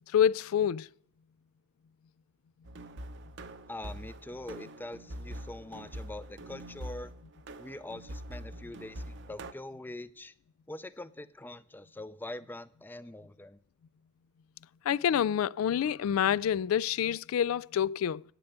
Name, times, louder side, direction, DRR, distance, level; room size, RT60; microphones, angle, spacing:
voice 1, 0.1-0.9 14.9-18.2, left 9 dB, 90° left, 0.3 m, -27 dB
sound 1, 2.6-9.5, right 1 dB, 60° right, 0.8 m, -44 dB
voice 2, 3.7-7.1 7.6-10.3 10.7-13.6, left 1 dB, 10° left, 0.4 m, -43 dB
9.3 x 6.8 x 8.0 m
head